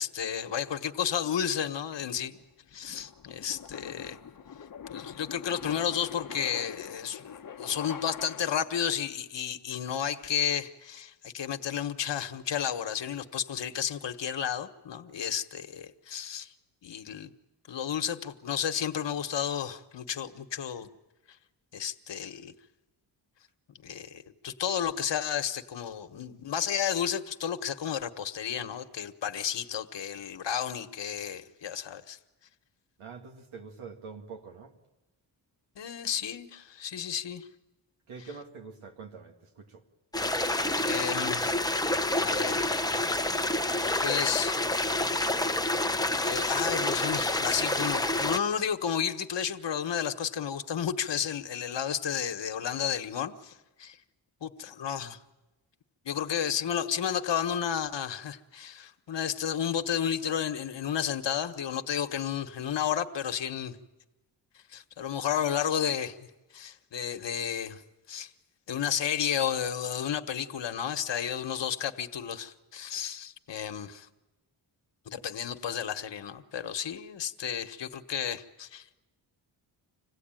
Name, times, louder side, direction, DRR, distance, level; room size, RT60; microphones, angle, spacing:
voice 1, 0.0-2.3 2.7-4.2 4.9-16.5 16.8-17.3 17.7-20.9 21.7-22.5 23.8-32.2 35.8-37.5 40.8-41.5 42.2-42.7 44.0-44.6 46.2-54.0 54.4-55.2 56.0-63.8 64.7-66.2 66.5-67.8 68.1-68.3 68.7-74.1 75.1-78.9, left 8 dB, 60° left, 1.4 m, -32 dB
sound 1, 2.2-8.8, left 7 dB, 45° left, 1.1 m, -44 dB
voice 2, 33.0-34.8 38.1-39.8, right 5 dB, 85° right, 2.3 m, -45 dB
sound 2, 40.1-48.4, left 1 dB, 10° left, 0.7 m, -28 dB
26.5 x 16.5 x 9.1 m
cardioid pair, 75°, 47 cm